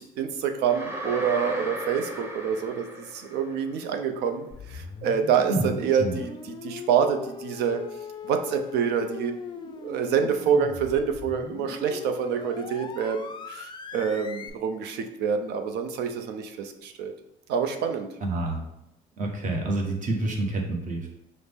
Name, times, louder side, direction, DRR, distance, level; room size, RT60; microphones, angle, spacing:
voice 1, 0.0-7.8 8.2-17.1 17.5-18.1, right 7 dB, 80° right, 7 dB, 0.5 m, -27 dB
sound 1, 0.7-3.8, equal, 15° right, 0.6 m, -35 dB
sound 2, 4.5-14.5, left 5 dB, 30° left, 0.4 m, -40 dB
voice 2, 18.2-18.6 19.2-21.1, right 2 dB, 50° right, 1 dB, 1.0 m, -28 dB
5.7 x 2.0 x 3.5 m, 0.85 s
cardioid pair, 110°, 17 cm